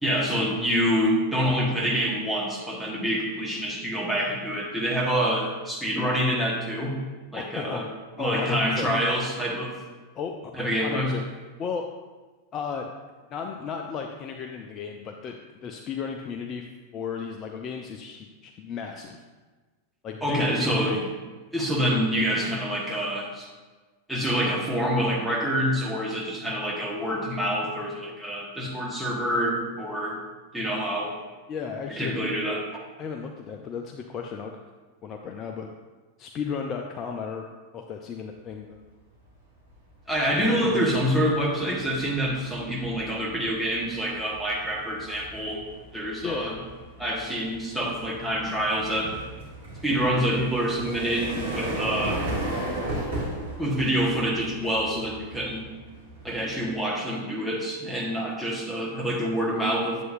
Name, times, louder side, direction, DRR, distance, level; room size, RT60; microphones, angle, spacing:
voice 1, 0.0-6.9 7.3-7.9 8.2-9.8 10.5-11.1 20.2-21.0 21.5-23.5 24.1-30.2 30.5-31.1 32.0-32.8 40.1-45.6 45.9-46.6 47.0-49.1 49.8-52.2 53.6-55.6 56.2-60.0, equal, ahead, -2 dB, 1.5 m, -26 dB
voice 2, 7.4-7.8 8.2-8.9 10.1-10.5 10.8-11.2 11.6-11.9 12.5-12.9 13.3-19.2 20.0-21.0 31.5-32.2 33.0-34.5 35.0-35.7 36.2-37.4 37.7-38.8 40.4-40.8 46.2-46.6 49.9-50.1, left 6 dB, 30° left, 3 dB, 0.5 m, -34 dB
sound 1, 39.4-39.7 40.1-56.8, right 1 dB, 70° right, 2.4 m, -36 dB
9.4 x 7.7 x 2.6 m, 1.3 s
figure-of-eight pair, 90°, 0 cm